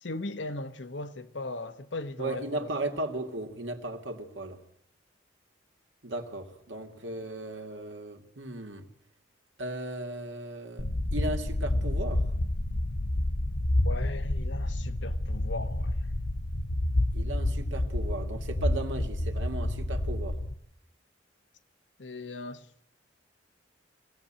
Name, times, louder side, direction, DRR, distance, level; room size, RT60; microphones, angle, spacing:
voice 1, 0.0-2.6 13.8-16.0 22.0-22.7, left 2 dB, 75° left, 1.1 m, -38 dB
voice 2, 2.2-4.6 6.0-8.9 9.6-12.2 17.1-20.4, right 2 dB, 90° right, 2.1 m, -36 dB
sound 1, 10.8-20.5, left 1 dB, 55° left, 0.9 m, -29 dB
22.5 x 16.0 x 8.7 m
head